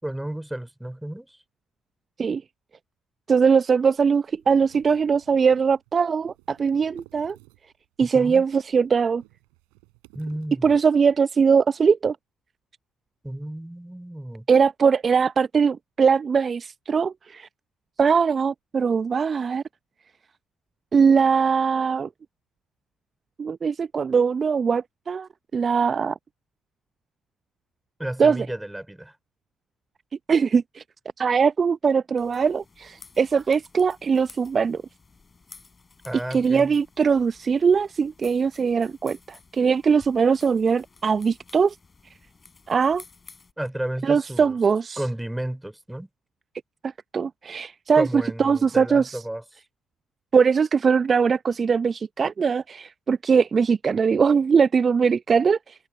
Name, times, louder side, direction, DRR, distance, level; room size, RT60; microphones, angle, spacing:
voice 1, 0.0-1.4 8.0-8.4 10.1-10.7 13.2-14.5 28.0-29.1 36.0-36.8 43.6-44.6 45.0-46.1 48.0-49.4, right 1 dB, 10° right, 4.4 m, -32 dB
voice 2, 3.3-7.4 8.0-9.2 10.6-12.2 14.5-17.5 18.0-19.6 20.9-22.1 23.4-26.1 28.2-28.5 30.3-30.8 31.2-34.8 36.3-41.7 42.7-43.0 44.0-45.0 46.8-49.2 50.3-55.7, right 6 dB, 45° right, 0.7 m, -21 dB
sound 1, 4.0-7.9 8.2-11.3, right 40 dB or more, 80° right, 4.0 m, -54 dB
sound 2, 32.2-43.5, left 4 dB, 35° left, 7.7 m, -52 dB
hypercardioid pair, 45°, 0 cm